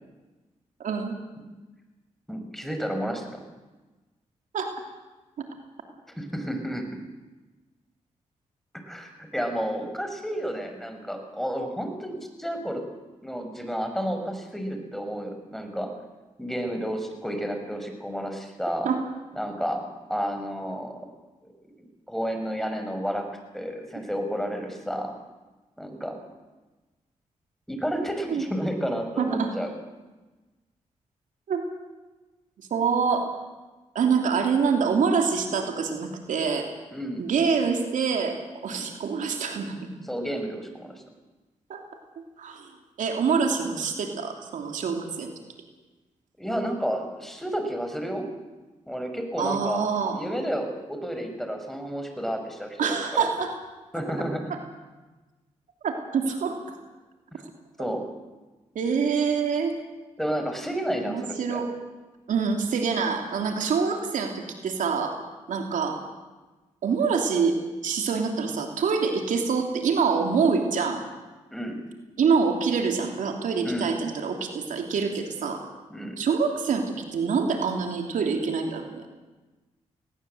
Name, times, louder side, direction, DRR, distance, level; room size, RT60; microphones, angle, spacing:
voice 1, 0.8-1.1 4.5-4.7 18.8-19.0 28.3-28.4 29.2-29.5 31.5-31.6 32.7-33.3 33.9-36.7 37.2-38.3 38.6-39.9 41.7-41.8 42.4-42.7 43.0-45.3 49.4-50.2 52.8-53.5 55.8-56.6 57.8-57.9 58.7-59.7 61.0-61.7 62.3-65.1 65.5-66.0 66.8-67.6 67.8-71.0 72.2-75.6 76.2-79.0, right 5 dB, 80° right, 4 dB, 3.1 m, -25 dB
voice 2, 2.3-3.4 6.2-6.9 8.8-12.8 13.2-15.9 16.4-18.9 19.4-21.1 22.1-23.3 23.5-25.1 25.8-26.2 27.7-29.7 36.9-37.2 38.6-38.9 40.1-41.0 46.4-48.3 48.9-49.9 50.1-53.3 53.9-54.5 57.8-58.0 60.2-61.6 71.5-71.8 73.6-73.9 75.9-76.2, equal, ahead, 5 dB, 5.5 m, -31 dB
19.5 x 18.0 x 7.9 m, 1.2 s
cardioid pair, 60°, 13 cm